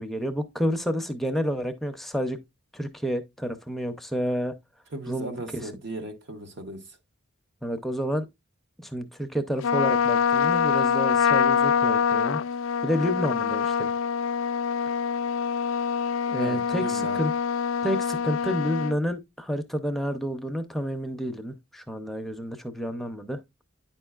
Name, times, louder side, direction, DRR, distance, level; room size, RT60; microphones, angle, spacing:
voice 1, 0.0-2.4 2.7-4.5 5.1-5.7 7.6-8.2 8.8-12.4 12.8-13.9 16.3-17.3 17.8-23.4, equal, ahead, 0.5 m, -29 dB
voice 2, 4.9-7.0 16.4-17.2, right 2 dB, 60° right, 0.9 m, -37 dB
Trumpet, 9.6-19.0, left 7 dB, 75° left, 0.3 m, -25 dB
9.4 x 5.3 x 2.3 m
head